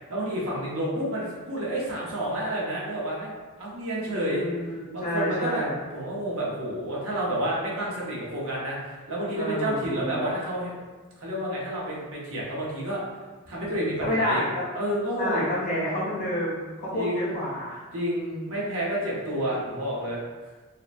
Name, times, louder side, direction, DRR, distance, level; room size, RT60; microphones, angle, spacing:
voice 1, 0.1-3.3 3.6-4.4 4.9-5.7 5.9-10.7 11.2-13.0 13.5-14.4 14.7-15.5 16.9-17.3 17.9-20.2, right 1 dB, 70° right, -5 dB, 0.7 m, -29 dB
voice 2, 4.1-5.7 9.3-10.3 14.0-14.6 15.2-17.9, left 1 dB, 35° left, -7 dB, 0.7 m, -29 dB
2.8 x 2.0 x 2.4 m, 1.3 s
head